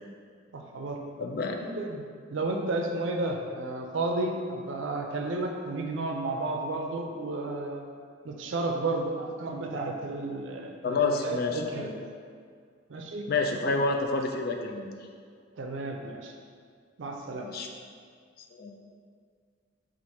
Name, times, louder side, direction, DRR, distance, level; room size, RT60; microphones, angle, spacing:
voice 1, 0.5-1.0 1.7-2.0 2.3-7.8 8.2-11.9 12.9-13.2 15.6-16.3 17.0-17.5, right 2 dB, 75° right, 2 dB, 0.5 m, -32 dB
voice 2, 1.2-1.6 10.8-12.0 13.3-15.0 17.4-17.7 18.5-18.7, left 3 dB, 50° left, 3 dB, 0.4 m, -29 dB
4.2 x 2.5 x 4.5 m, 2.1 s
head